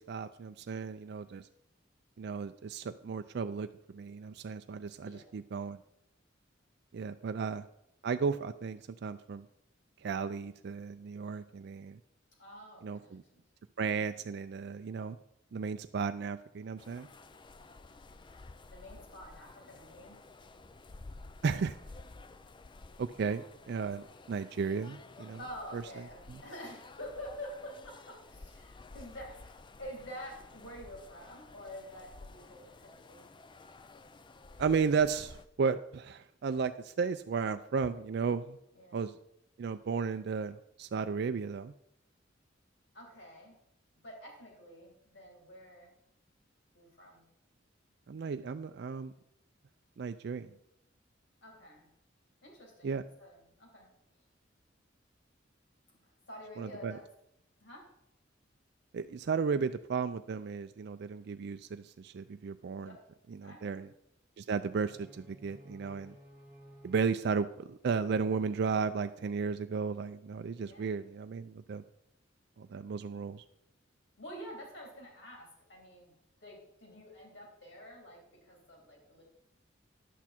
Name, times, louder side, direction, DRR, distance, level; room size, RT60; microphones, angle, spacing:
voice 1, 0.0-1.5 2.2-5.8 6.9-7.7 8.0-9.5 10.0-12.0 12.8-13.2 13.8-15.2 15.5-17.1 21.4-21.8 23.0-25.4 25.7-26.0 26.3-26.4 34.6-38.6 38.9-39.1 39.6-41.7 48.1-49.1 50.0-50.5 52.8-53.0 56.6-57.0 58.9-63.0 63.3-63.9 64.4-66.2 66.8-71.8 72.6-73.4, right 5 dB, 60° right, 9 dB, 0.4 m, -34 dB
voice 2, 5.0-5.3 12.4-13.4 18.7-20.2 25.4-29.5 29.8-33.3 38.8-39.0 42.9-43.6 44.0-45.9 46.7-47.3 51.4-51.9 52.4-53.9 56.3-57.0 57.6-57.9 62.8-63.0 63.4-63.8 70.7-70.9 74.2-76.1 76.4-79.2, equal, 70° left, 0 dB, 3.7 m, -48 dB
sound 1, 16.8-35.4, left 3 dB, 25° left, 0.4 m, -53 dB
sound 2, 64.6-68.7, equal, 10° right, 1.7 m, -57 dB
11.0 x 8.3 x 4.4 m, 0.78 s
head